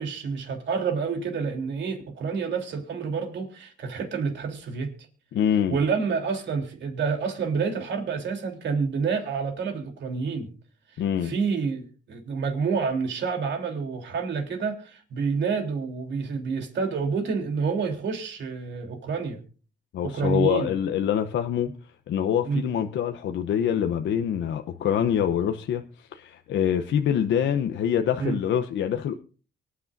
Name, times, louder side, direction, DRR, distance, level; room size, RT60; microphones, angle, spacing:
voice 1, 0.0-4.9 5.7-10.5 11.2-19.4 20.0-20.7 22.5-22.6 28.2-28.4, right 5 dB, 65° right, 3.5 m, -28 dB
voice 2, 5.3-5.8 11.0-11.3 19.9-21.7 22.1-29.1, left 9 dB, 70° left, 0.9 m, -25 dB
24.0 x 9.9 x 2.6 m
cardioid pair, 90°, 20 cm